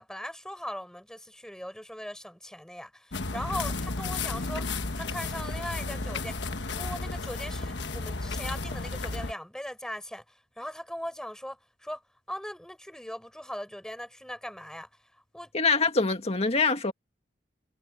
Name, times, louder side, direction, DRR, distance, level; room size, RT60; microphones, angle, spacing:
voice 1, 0.0-4.7 4.9-6.4 6.7-12.0 12.3-14.9 15.3-15.5, equal, 5° left, 5.3 m, -39 dB
sound 1, 3.1-9.3, left 3 dB, 70° left, 1.3 m, -33 dB
voice 2, 15.5-16.9, left 4 dB, 35° left, 2.0 m, -24 dB
head